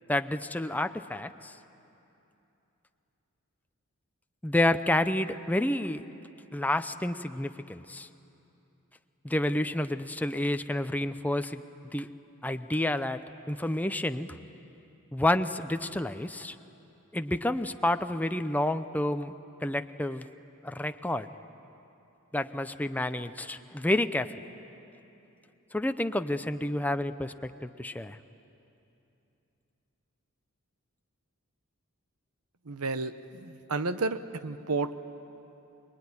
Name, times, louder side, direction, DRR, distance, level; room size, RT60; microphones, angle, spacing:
voice 1, 0.1-1.5 4.4-6.0 6.5-8.1 9.2-11.6 11.9-12.1 12.4-13.2 13.5-14.3 15.1-16.6 17.1-19.3 19.6-20.3 20.6-21.3 22.3-24.3 25.7-28.2, left 1 dB, 5° left, 9 dB, 0.6 m, -29 dB
voice 2, 32.7-33.1 33.4-35.0, right 3 dB, 85° right, 11 dB, 0.9 m, -31 dB
24.5 x 21.5 x 9.7 m, 2.9 s
head